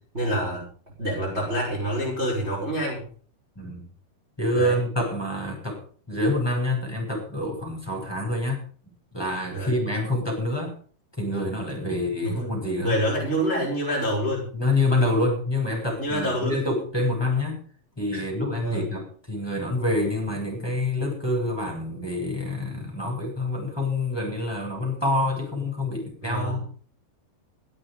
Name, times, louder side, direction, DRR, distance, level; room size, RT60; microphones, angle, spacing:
voice 1, 0.1-0.7 1.0-3.0 4.5-4.8 9.5-9.8 12.2-12.5 12.8-14.5 16.0-16.6 18.1-18.2 18.6-18.9 26.2-26.6, equal, 15° right, -3 dB, 6.5 m, -27 dB
voice 2, 4.4-5.8 6.1-8.6 9.1-10.8 11.2-13.0 14.5-17.6 18.0-26.6, left 1 dB, 5° left, -1 dB, 7.7 m, -27 dB
16.5 x 13.5 x 5.4 m, 0.43 s
omnidirectional pair, 5.6 m